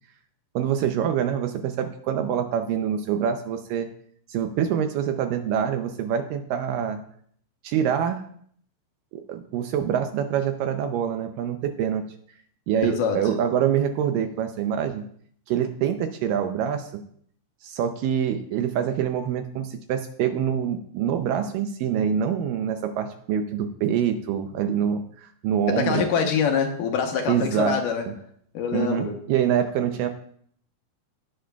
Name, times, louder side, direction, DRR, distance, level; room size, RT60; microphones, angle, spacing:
voice 1, 0.6-3.9 4.3-7.0 7.6-8.2 9.1-12.0 12.7-15.0 15.5-17.0 17.6-26.0 27.3-27.8 28.7-30.1, right 9 dB, 80° right, 7 dB, 2.0 m, -25 dB
voice 2, 12.8-13.3 25.7-28.1 28.5-29.2, left 6 dB, 70° left, 4 dB, 2.2 m, -25 dB
18.0 x 6.3 x 2.3 m, 0.62 s
omnidirectional pair, 4.5 m